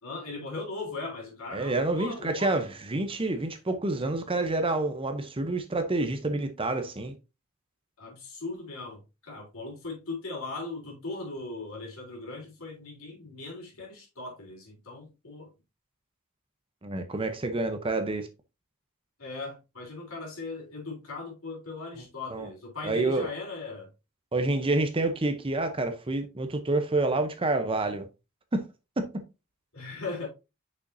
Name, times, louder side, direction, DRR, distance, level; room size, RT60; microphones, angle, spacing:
voice 1, 0.0-2.7 8.0-15.5 19.2-23.9 29.7-30.3, left 3 dB, 65° left, 3.4 m, -38 dB
voice 2, 1.5-7.1 16.8-18.3 22.3-22.5 22.8-23.3 24.3-28.1 28.5-28.6 29.0-29.1, right 2 dB, 25° right, 0.7 m, -28 dB
6.3 x 5.7 x 2.6 m
head